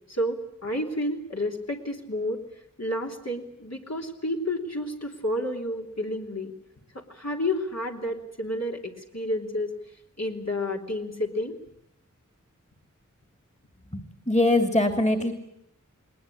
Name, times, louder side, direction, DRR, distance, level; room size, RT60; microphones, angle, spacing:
voice 1, 0.1-2.4 2.8-6.5 6.9-9.7 10.2-11.6, left 1 dB, 55° left, 0 dB, 3.3 m, -30 dB
voice 2, 13.9-15.3, left 1 dB, 20° left, 6 dB, 2.7 m, -23 dB
20.0 x 19.5 x 10.0 m, 0.77 s
wide cardioid pair, 40°, 31 cm